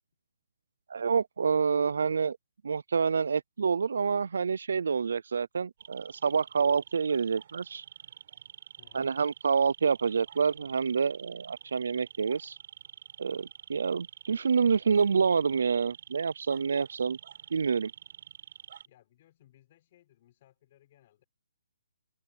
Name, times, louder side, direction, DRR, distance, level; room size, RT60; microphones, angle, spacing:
voice 1, 0.9-2.4 2.6-7.8 8.9-12.6 13.2-17.2 17.5-17.9, right 5 dB, 70° right, 0.5 m, -27 dB
sound 1, 5.8-18.9, right 9 dB, 45° right, 5.8 m, -49 dB
voice 2, 8.8-9.1 18.8-21.2, left 13 dB, 30° left, 6.4 m, -62 dB
hypercardioid pair, 170°, 0 cm